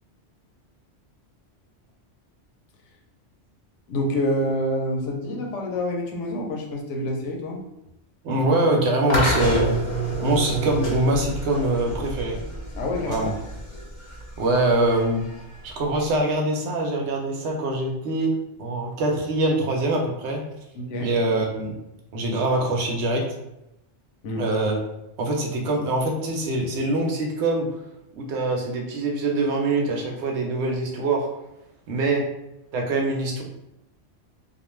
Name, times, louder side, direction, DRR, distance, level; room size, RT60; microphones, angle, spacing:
voice 1, 3.9-7.6 12.7-13.3 20.7-21.1 24.2-24.5, left 1 dB, 80° left, 1 dB, 0.9 m, -27 dB
voice 2, 8.2-9.7 10.2-12.4 13.1-13.3 14.4-15.3 15.6-20.5 21.0-21.8 22.1-23.3 24.3-24.8 25.2-27.7 28.2-31.3 31.9-32.2 32.7-33.4, right 2 dB, 70° right, 0 dB, 0.9 m, -23 dB
sound 1, 9.1-16.2, right 1 dB, 45° left, 0.7 m, -29 dB
2.5 x 2.2 x 3.0 m, 0.89 s
omnidirectional pair, 1.2 m